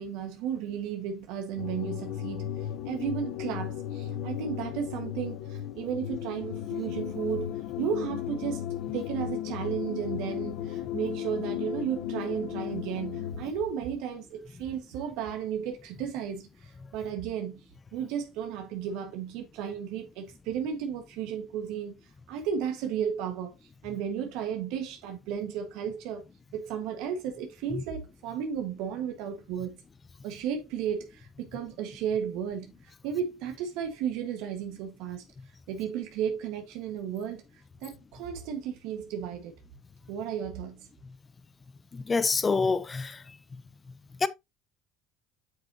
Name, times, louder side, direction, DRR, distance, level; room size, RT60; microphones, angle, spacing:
voice 1, 0.0-8.7 8.9-22.0 22.3-23.5 23.8-26.2 26.5-29.8 30.2-35.2 35.7-37.4 37.8-39.5 40.1-40.9, right 8 dB, 75° right, 1.4 m, -34 dB
sound 1, 1.6-13.5, left 11 dB, 75° left, 0.9 m, -35 dB
voice 2, 41.9-43.2 44.2-44.3, left 4 dB, 25° left, 0.8 m, -26 dB
7.9 x 6.4 x 2.7 m
supercardioid pair, 95°, 0 cm